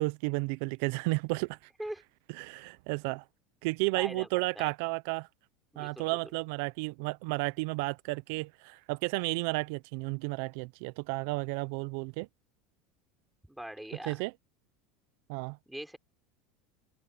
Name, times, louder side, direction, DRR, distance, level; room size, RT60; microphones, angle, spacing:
voice 1, 0.0-1.6 2.4-3.2 3.6-5.3 5.8-12.3 14.1-14.3 15.3-15.6, right 26 dB, 70° right, 0.6 m, -32 dB
voice 2, 4.0-4.7 5.7-6.2 13.5-14.2 15.7-16.0, right 1 dB, 5° right, 6.2 m, -42 dB
hypercardioid pair, 95°, 0 cm